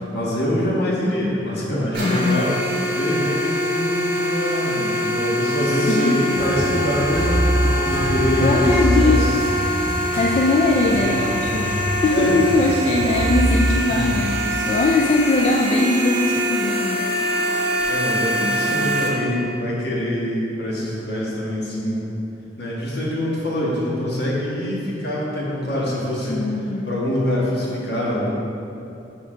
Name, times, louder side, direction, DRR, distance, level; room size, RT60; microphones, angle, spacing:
voice 1, 0.1-2.5 2.9-9.2 12.1-12.3 17.9-22.1 22.6-26.4 26.8-28.3, left 1 dB, 60° left, -5 dB, 1.5 m, -24 dB
sound 1, 1.9-19.1, equal, 55° right, 1.5 m, -24 dB
voice 2, 2.0-2.4 5.6-6.3 8.4-9.8 10.1-17.0 18.4-19.0 26.3-27.0, left 2 dB, 35° left, -1 dB, 0.3 m, -21 dB
sound 2, 6.3-14.2, equal, 15° right, 0.8 m, -24 dB
6.3 x 5.5 x 3.8 m, 2.8 s
head